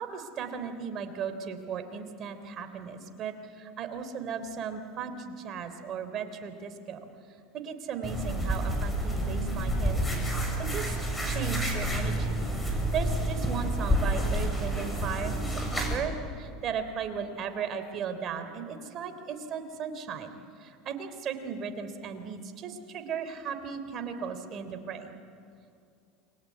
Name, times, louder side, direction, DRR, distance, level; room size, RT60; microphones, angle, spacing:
voice 1, 0.0-7.0 7.5-10.3 10.6-10.9 11.2-12.4 12.9-20.3 20.6-25.2, right 6 dB, 45° right, 8 dB, 3.5 m, -36 dB
sound 1, 8.0-16.0, right 1 dB, 10° left, 7.6 m, -29 dB
29.0 x 23.5 x 8.5 m, 2.4 s
hypercardioid pair, 95°, 0 cm